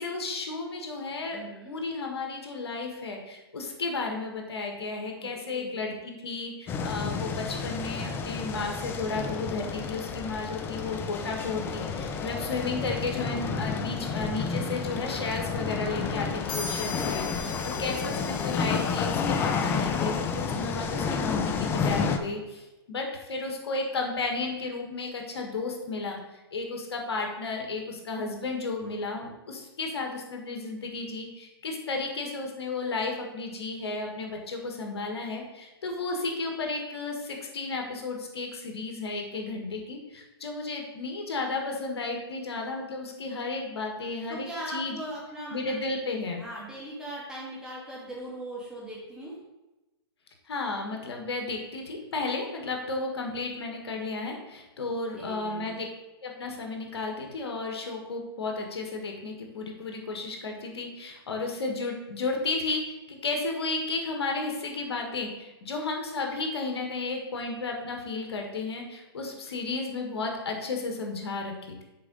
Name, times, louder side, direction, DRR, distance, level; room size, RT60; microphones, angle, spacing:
voice 1, 0.0-1.4 1.6-45.0 45.5-46.4 50.5-55.8 56.2-71.8, left 3 dB, 70° left, 2 dB, 1.6 m, -33 dB
voice 2, 1.3-1.8 5.2-5.9 17.4-18.0 44.3-45.8 46.4-49.4 54.8-55.8, right 1 dB, 5° right, -5 dB, 2.1 m, -40 dB
sound 1, 6.7-22.2, left 5 dB, 15° left, 0.5 m, -30 dB
sound 2, 16.5-20.1, left 5 dB, 45° left, 2.5 m, -40 dB
6.8 x 4.8 x 5.3 m, 1.0 s
hypercardioid pair, 140°, 14 cm